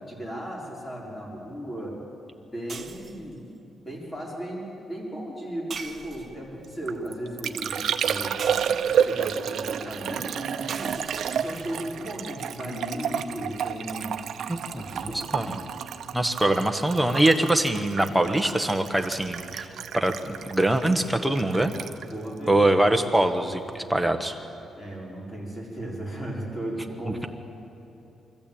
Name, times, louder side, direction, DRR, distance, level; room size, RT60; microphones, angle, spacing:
voice 1, 0.1-2.0 2.5-3.4 3.8-11.0 11.3-14.1 14.7-15.7 22.0-22.6 24.8-27.3, equal, 15° left, -3 dB, 4.8 m, -36 dB
sound 1, 2.7-3.3 5.7-6.6 8.4-9.2 10.7-11.7, right 5 dB, 35° right, 1.3 m, -41 dB
Liquid, 6.6-23.3 23.5-24.1, right 8 dB, 65° right, 0.8 m, -31 dB
voice 2, 14.5-15.6 16.1-19.7 19.9-21.7 22.5-24.4, right 1 dB, 5° right, 5 dB, 1.2 m, -23 dB
24.5 x 14.5 x 8.7 m, 2.8 s
cardioid pair, 140°, 0 cm